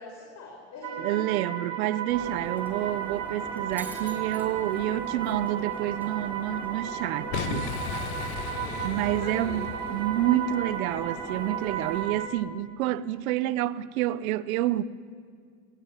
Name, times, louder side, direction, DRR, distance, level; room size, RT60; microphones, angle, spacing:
voice 1, 0.0-1.4 8.4-9.7, left 3 dB, 40° left, 6.1 m, -42 dB
sound 1, 0.8-12.3, right 9 dB, 45° right, 3.1 m, -34 dB
voice 2, 1.0-7.7 8.8-14.8, right 13 dB, 85° right, 1.0 m, -28 dB
Shatter, 2.1-12.1, right 1 dB, 5° right, 4.5 m, -42 dB
Boom, 7.3-10.3, left 8 dB, 65° left, 1.8 m, -35 dB
28.5 x 18.0 x 9.1 m
supercardioid pair, 130°, 41 cm